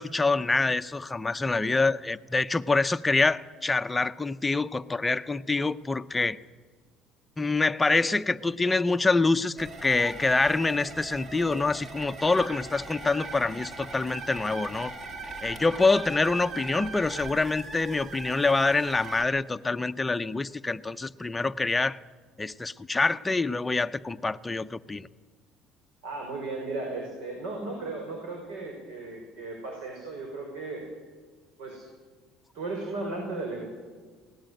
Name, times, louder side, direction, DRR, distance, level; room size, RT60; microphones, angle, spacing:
voice 1, 0.0-6.4 7.4-14.9 15.4-22.0 22.4-25.1, left 3 dB, 10° left, 10 dB, 0.5 m, -26 dB
sound 1, 9.6-19.2, right 3 dB, 35° right, 2.0 m, -40 dB
voice 2, 26.0-30.9 31.6-31.9 32.5-33.7, right 3 dB, 85° right, 2 dB, 5.3 m, -35 dB
22.5 x 18.0 x 7.8 m, 1.5 s
cardioid pair, 155°, 0 cm